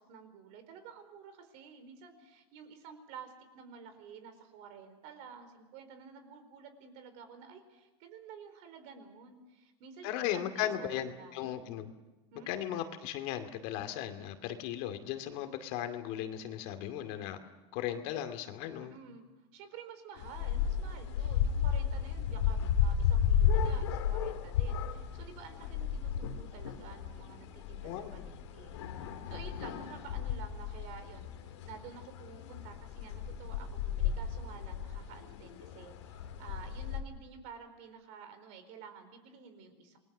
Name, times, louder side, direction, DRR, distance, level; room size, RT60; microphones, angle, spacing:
voice 1, 0.0-11.6 12.3-12.5 18.8-19.2 19.5-40.0, right 6 dB, 55° right, 9 dB, 4.5 m, -51 dB
voice 2, 10.0-11.9 12.5-17.4 17.7-19.0 27.8-28.1, left 11 dB, 60° left, 7 dB, 2.4 m, -37 dB
sound 1, 20.2-37.0, left 8 dB, 90° left, 3.0 m, -33 dB
28.0 x 21.0 x 6.7 m, 1.1 s
supercardioid pair, 140°, 14 cm